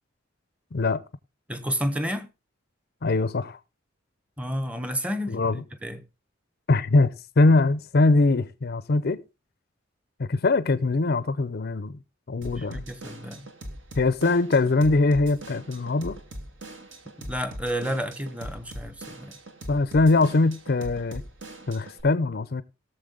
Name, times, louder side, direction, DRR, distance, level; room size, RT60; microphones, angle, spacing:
voice 1, 0.7-1.0 3.0-3.6 5.3-5.6 6.7-9.2 10.2-12.0 12.3-12.8 14.0-16.2 19.7-21.2 21.7-22.6, left 3 dB, 50° left, 0.6 m, -22 dB
voice 2, 1.5-2.3 4.4-5.4 5.8-6.0 12.6-13.5 17.2-19.3, equal, 5° right, 1.0 m, -30 dB
Drum kit / Drum, 12.4-22.0, right 1 dB, 65° right, 2.3 m, -41 dB
17.5 x 6.9 x 3.8 m
head